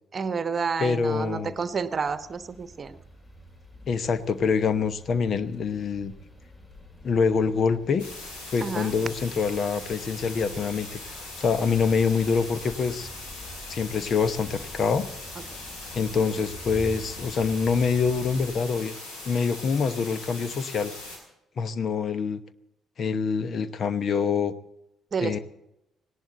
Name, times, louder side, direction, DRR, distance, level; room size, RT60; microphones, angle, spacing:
voice 1, 0.1-3.0 8.6-8.9 25.1-25.4, right 5 dB, 40° right, 12 dB, 1.0 m, -30 dB
voice 2, 0.8-1.5 3.9-6.1 7.0-8.1 8.5-13.1 13.7-15.1 15.9-18.9 19.3-20.9 21.6-22.4 23.0-24.5 25.2-25.4, left 5 dB, 50° left, 14 dB, 0.9 m, -25 dB
sound 1, 1.1-18.6, left 1 dB, 30° left, 5.6 m, -47 dB
sound 2, 8.0-21.2, left 2 dB, 70° left, 4.8 m, -40 dB
18.0 x 18.0 x 4.0 m, 0.88 s
figure-of-eight pair, 45°, 0 cm